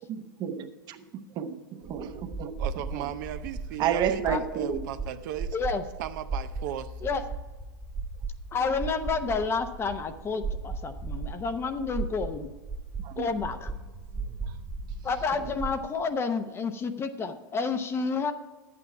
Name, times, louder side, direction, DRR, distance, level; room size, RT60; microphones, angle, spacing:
voice 1, 0.1-0.8 1.4-1.6 1.9-2.5 2.9-3.1 3.8-4.9 13.0-13.3, right 8 dB, 40° right, 1.0 m, -30 dB
sound 1, 1.8-15.9, right 4 dB, 25° right, 1.3 m, -37 dB
voice 2, 2.6-5.6 6.0-6.9, right 12 dB, 60° right, 0.6 m, -36 dB
voice 3, 5.5-5.8 7.0-7.2 8.5-12.5 13.2-13.7 15.0-18.3, left 4 dB, 20° left, 0.8 m, -30 dB
10.5 x 8.6 x 4.7 m
hypercardioid pair, 115°, 11 cm